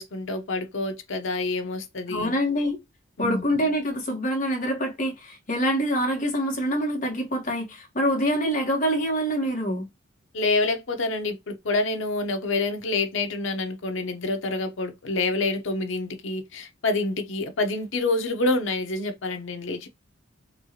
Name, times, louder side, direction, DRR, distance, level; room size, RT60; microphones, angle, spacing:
voice 1, 0.0-2.3 3.2-3.4 10.3-19.9, left 2 dB, 75° left, 0.7 m, -27 dB
voice 2, 2.1-2.8 3.2-9.9, equal, 40° left, 1.2 m, -25 dB
4.4 x 2.4 x 2.8 m
head